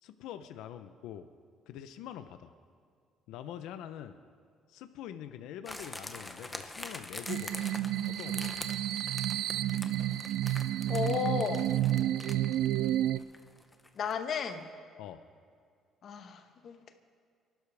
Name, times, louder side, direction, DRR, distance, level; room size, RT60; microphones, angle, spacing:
voice 1, 0.0-1.3 1.7-2.5 3.3-4.2 4.7-7.7 8.0-8.6 13.1-13.3 15.0-15.2, left 10 dB, 85° left, 10 dB, 0.6 m, -44 dB
sound 1, 5.7-14.3 14.5-14.6, left 2 dB, 10° left, 0.7 m, -45 dB
sound 2, 7.3-13.2, right 13 dB, 65° right, 0.3 m, -30 dB
voice 2, 10.9-11.7 13.9-14.6 16.0-16.9, left 6 dB, 40° left, 7 dB, 1.0 m, -33 dB
25.5 x 11.5 x 3.4 m, 2.2 s
cardioid pair, 175°, 0 cm